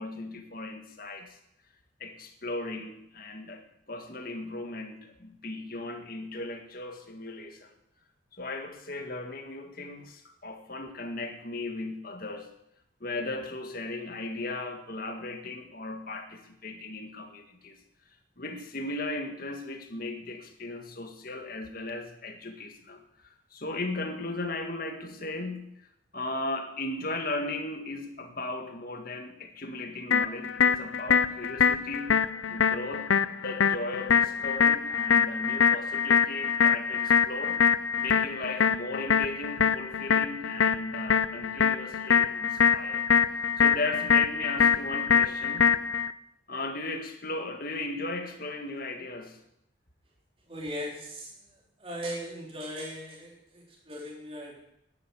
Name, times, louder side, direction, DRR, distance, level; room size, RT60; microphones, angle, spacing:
voice 1, 0.0-1.4 2.0-7.7 8.3-12.5 13.0-17.8 18.4-25.7 26.1-32.2 32.5-37.6 38.0-43.0 43.6-45.7 46.5-49.4, left 2 dB, 45° left, 5 dB, 1.9 m, -37 dB
sound 1, 30.1-46.1, left 7 dB, 85° left, 0.6 m, -24 dB
voice 2, 50.5-51.3 51.8-54.6, equal, 30° right, -1 dB, 3.6 m, -38 dB
11.0 x 11.0 x 8.6 m, 0.78 s
head